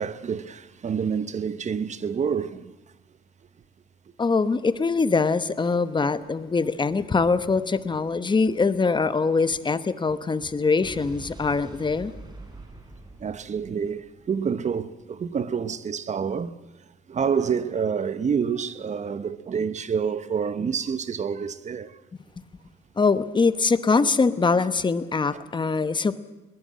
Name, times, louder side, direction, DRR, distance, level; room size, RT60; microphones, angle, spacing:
voice 1, 0.0-2.7 13.2-16.6 17.1-21.9 25.3-25.4, right 6 dB, 40° right, 1.1 m, -28 dB
voice 2, 4.2-12.1 23.0-26.2, left 4 dB, 25° left, 1.1 m, -23 dB
Explosion, 10.8-14.9, right 2 dB, 25° right, 4.3 m, -44 dB
21.5 x 20.0 x 7.7 m
cardioid pair, 110°, 18 cm